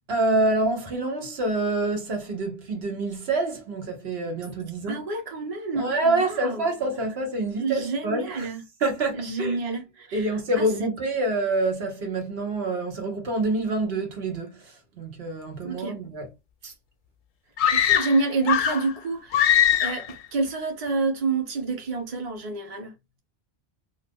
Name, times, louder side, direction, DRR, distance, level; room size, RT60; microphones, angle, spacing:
voice 1, 0.1-5.0 5.7-8.5 8.8-9.6 10.1-16.3 16.6-16.7, right 2 dB, 85° right, 1.2 m, -27 dB
voice 2, 4.9-6.7 7.6-8.6 9.1-10.9 15.6-16.0 17.7-19.5 19.8-22.9, right 3 dB, 40° right, 0.9 m, -28 dB
sound 1, 17.6-18.9 19.3-20.1, left 10 dB, 60° left, 0.6 m, -21 dB
2.5 x 2.5 x 3.4 m
omnidirectional pair, 1.0 m